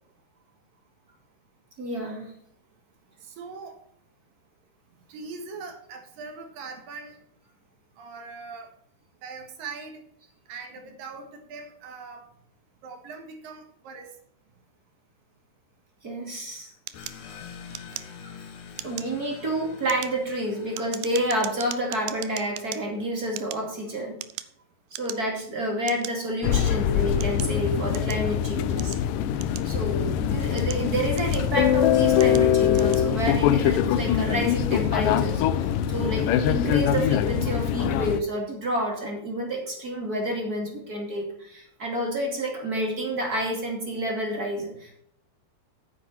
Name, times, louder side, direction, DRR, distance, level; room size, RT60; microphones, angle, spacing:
voice 1, 1.8-2.3 16.0-16.7 18.2-18.4 18.8-24.2 24.9-29.0 29.6-45.0, right 1 dB, 30° right, 0 dB, 2.4 m, -29 dB
voice 2, 3.2-3.8 5.1-7.2 8.0-8.7 9.2-10.0 10.5-12.2 12.8-14.2, right 4 dB, 65° right, 4 dB, 3.1 m, -41 dB
sound 1, 16.9-23.2, left 6 dB, 60° left, 2.5 m, -46 dB
sound 2, 16.9-18.4 18.7-19.2 19.7-22.8 23.3-24.6 24.9-25.4 25.9-26.1 26.8-28.3 28.8-30.0 30.4-31.6 32.2-32.5 32.7-33.1, right 15 dB, 80° right, 2.2 m, -38 dB
sound 3, 26.4-38.2, left 10 dB, 80° left, 2.0 m, -23 dB
9.8 x 8.9 x 4.3 m, 0.71 s
omnidirectional pair, 4.5 m